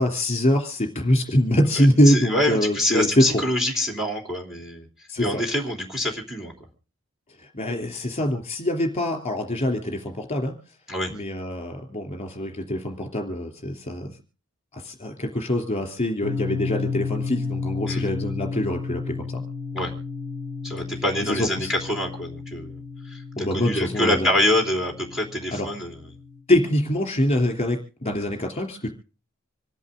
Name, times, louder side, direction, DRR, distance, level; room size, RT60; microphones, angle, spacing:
voice 1, 0.0-3.2 5.1-5.4 7.4-10.5 11.1-14.1 14.7-19.4 21.3-21.7 23.4-24.3 25.5-25.7 26.5-28.9, left 1 dB, 30° left, 4 dB, 3.1 m, -24 dB
voice 2, 1.8-4.9 5.2-6.5 10.9-11.1 17.9-18.1 19.7-19.9 20.6-22.8 23.1-26.0, left 1 dB, ahead, 2 dB, 3.2 m, -25 dB
sound 1, 16.2-26.4, left 4 dB, 55° right, 5.1 m, -33 dB
26.5 x 11.0 x 3.7 m, 0.35 s
head